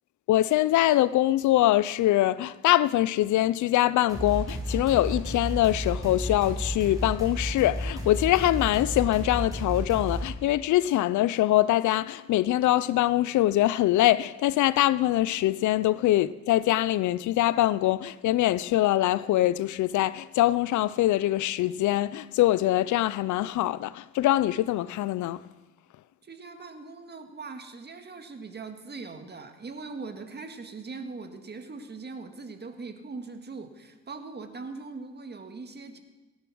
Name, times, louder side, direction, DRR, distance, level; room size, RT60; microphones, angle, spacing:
voice 1, 0.3-25.4, left 14 dB, 75° left, 0.5 m, -23 dB
sound 1, 4.1-10.3, equal, 10° right, 5.4 m, -32 dB
voice 2, 26.2-36.0, right 4 dB, 35° right, 1.9 m, -41 dB
17.5 x 10.5 x 6.2 m
cardioid pair, 90°, 30 cm